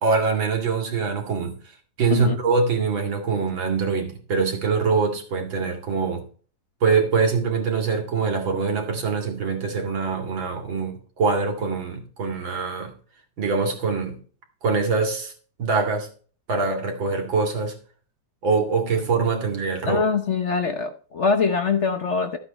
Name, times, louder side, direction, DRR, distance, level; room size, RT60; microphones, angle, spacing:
voice 1, 0.0-1.5 2.0-6.2 6.8-12.9 13.4-14.2 14.6-15.3 15.6-16.1 16.5-17.7 18.4-20.0, right 4 dB, 90° right, 3.1 m, -24 dB
voice 2, 19.8-22.4, left 5 dB, 50° left, 0.9 m, -23 dB
13.0 x 7.9 x 4.2 m
omnidirectional pair, 2.1 m